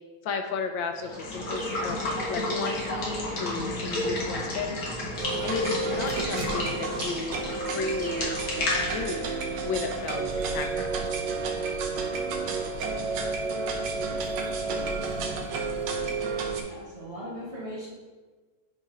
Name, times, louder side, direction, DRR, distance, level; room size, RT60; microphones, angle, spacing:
voice 1, 0.2-2.0 2.3-4.8 5.4-7.4 7.7-8.3 8.8-9.3 9.6-10.9, left 5 dB, 75° left, 5 dB, 1.2 m, -33 dB
Water / Water tap faucet / Liquid, 1.0-10.6, left 1 dB, 55° left, 1.6 m, -32 dB
sound 1, 1.6-4.0 6.1-7.4 8.0-8.4, left 1 dB, 20° left, 1.0 m, -44 dB
sound 2, 5.2-16.6, right 4 dB, 70° right, 1.3 m, -31 dB
voice 2, 16.5-17.9, equal, 35° right, -9 dB, 1.3 m, -39 dB
9.7 x 4.0 x 2.4 m, 1.4 s
omnidirectional pair, 2.2 m